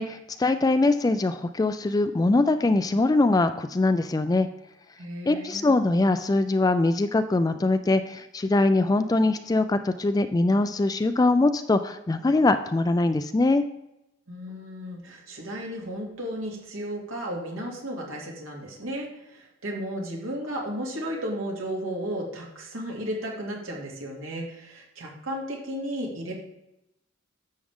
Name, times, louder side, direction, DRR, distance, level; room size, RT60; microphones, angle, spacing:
voice 1, 0.0-4.5 5.3-13.7, left 2 dB, 20° left, 9 dB, 0.3 m, -22 dB
voice 2, 5.0-5.7 14.3-26.3, equal, 85° right, -1 dB, 2.6 m, -34 dB
11.0 x 7.3 x 3.6 m, 0.89 s
head